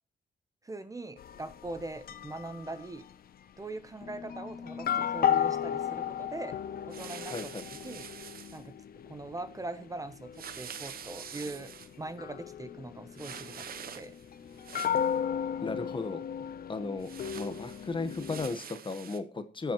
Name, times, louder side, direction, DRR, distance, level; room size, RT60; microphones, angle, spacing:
voice 1, 0.6-3.0 3.6-6.6 6.9-7.5 7.8-8.1 8.5-8.7 9.1-10.3 10.6-11.7 12.0-13.6 14.0-14.1, right 2 dB, 20° right, 11 dB, 0.7 m, -41 dB
sound 1, 1.2-3.1 4.0-18.5, left 9 dB, 60° left, 0.7 m, -35 dB
sound 2, 6.9-8.6 10.3-11.9 13.1-14.2 14.5-15.2 17.0-19.2, right 8 dB, 60° right, 0.8 m, -45 dB
voice 2, 7.3-7.7 15.6-16.2 16.7-17.1 17.3-19.7, left 3 dB, 30° left, 10 dB, 1.1 m, -35 dB
18.5 x 7.4 x 3.0 m, 0.35 s
cardioid pair, 105°, 17 cm